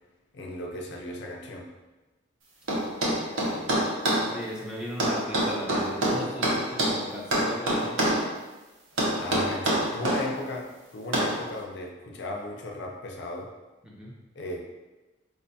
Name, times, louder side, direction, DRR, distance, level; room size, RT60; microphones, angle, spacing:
voice 1, 0.3-1.7 9.2-13.5 14.3-14.6, left 1 dB, 60° left, 1 dB, 0.4 m, -36 dB
sound 1, 2.7-4.2 5.0-7.0 7.3-8.2 9.0-10.2 11.1-11.4, right 1 dB, 90° right, 0.8 m, -25 dB
voice 2, 2.8-3.9 4.3-8.0 13.8-14.2, equal, 5° right, -4 dB, 0.5 m, -38 dB
4.7 x 2.6 x 2.2 m, 1.1 s
head